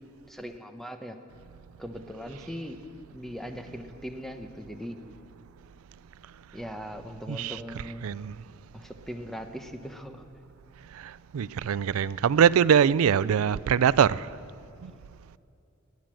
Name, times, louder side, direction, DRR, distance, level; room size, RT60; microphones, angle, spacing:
voice 1, 0.3-1.2 1.8-2.8 3.1-5.0 6.5-8.1 8.7-10.2, equal, ahead, 0.8 m, -39 dB
voice 2, 7.3-7.6 8.0-8.3 11.3-14.3 14.8-14.9, right 8 dB, 85° right, 0.4 m, -22 dB
18.0 x 10.5 x 7.6 m
head